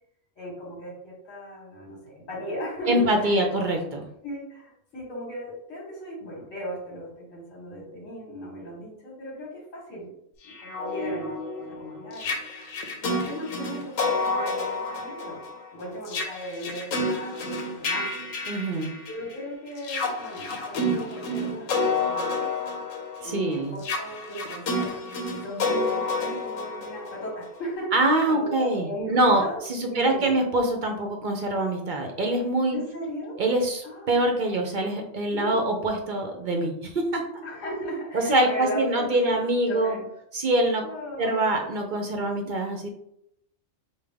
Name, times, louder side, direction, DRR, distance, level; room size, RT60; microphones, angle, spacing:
voice 1, 0.4-3.5 4.2-10.1 10.4-11.3 11.7-12.3 12.6-12.7 13.0-15.4 15.7-18.2 19.1-22.5 23.2-25.0 25.4-30.4 32.7-33.4 33.8-34.2 35.3-35.6 37.4-39.4 39.7-40.1 40.8-41.7, equal, 75° left, -4 dB, 1.6 m, -37 dB
voice 2, 2.9-4.1 18.5-18.9 23.2-23.8 27.9-29.4 29.8-32.8 33.4-37.2 38.1-40.0 40.3-40.8 41.2-42.9, right 1 dB, 50° right, 2 dB, 0.7 m, -24 dB
sound 1, 10.5-19.3 19.8-27.6, left 2 dB, 90° left, 1.1 m, -30 dB
5.3 x 2.3 x 3.4 m, 0.76 s
omnidirectional pair, 1.3 m